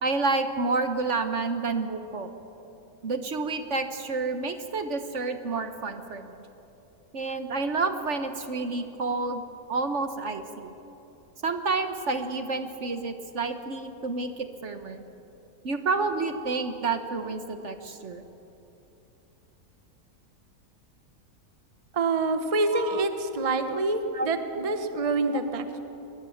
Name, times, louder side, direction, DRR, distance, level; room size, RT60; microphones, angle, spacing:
voice 1, 0.0-2.3 3.0-6.3 7.1-9.4 9.7-10.7 11.4-15.0 15.6-18.2 22.7-23.0 23.7-23.8 24.1-24.6 25.3-25.4, right 3 dB, 55° right, 8 dB, 1.3 m, -29 dB
voice 2, 21.9-25.8, right 3 dB, 25° right, 8 dB, 1.0 m, -26 dB
21.0 x 21.0 x 7.2 m, 3.0 s
omnidirectional pair, 1.6 m